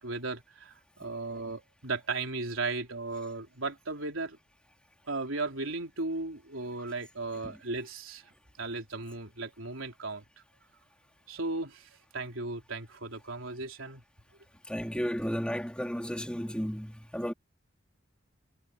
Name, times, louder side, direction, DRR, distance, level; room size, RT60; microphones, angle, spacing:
voice 1, 0.0-4.4 5.1-8.2 8.6-10.2 11.3-14.0, right 3 dB, 90° right, 3.9 m, -36 dB
voice 2, 14.7-17.3, equal, 5° left, 3.5 m, -33 dB
head